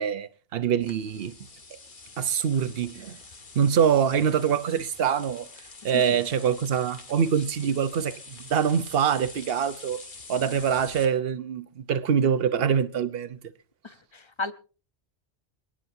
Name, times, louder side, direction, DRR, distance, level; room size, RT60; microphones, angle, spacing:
voice 1, 0.0-1.3 1.7-1.8 2.2-3.2 3.5-5.5 5.8-10.0 10.3-13.4, right 7 dB, 60° right, 1.0 m, -24 dB
sound 1, 0.8-11.1, left 3 dB, 50° left, 1.5 m, -46 dB
voice 2, 13.8-14.5, left 3 dB, 30° left, 0.7 m, -34 dB
28.0 x 9.9 x 2.7 m
omnidirectional pair, 1.1 m